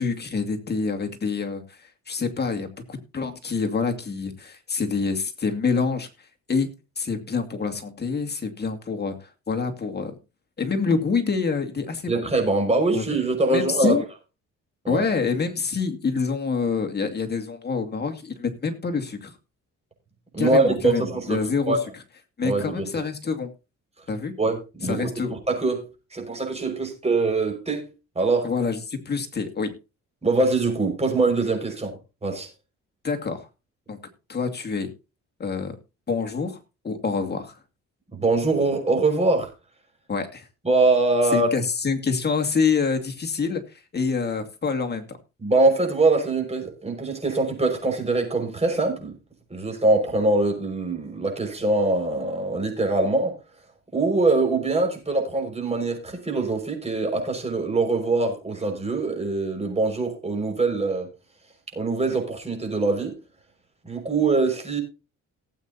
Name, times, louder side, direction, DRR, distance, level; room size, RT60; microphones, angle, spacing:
voice 1, 0.0-1.8 2.1-6.1 6.5-10.2 10.6-12.2 12.9-13.2 13.5-14.0 14.9-19.4 20.4-21.8 22.4-23.5 24.1-24.3 24.9-25.4 28.4-29.8 33.0-33.5 33.9-34.0 34.3-34.9 35.4-35.8 36.1-36.6 36.8-37.6 40.1-40.5 41.3-45.2, left 5 dB, 35° left, 2.4 m, -26 dB
voice 2, 12.1-14.0 14.8-15.1 20.3-21.4 21.7-21.8 22.4-22.9 24.4-27.8 28.1-28.5 30.2-32.5 38.1-39.5 40.6-41.5 45.4-49.2 49.5-53.4 53.9-61.1 61.7-63.2 63.8-64.8, right 3 dB, 20° right, 5.8 m, -23 dB
18.0 x 8.6 x 2.9 m
cardioid pair, 90°, 30 cm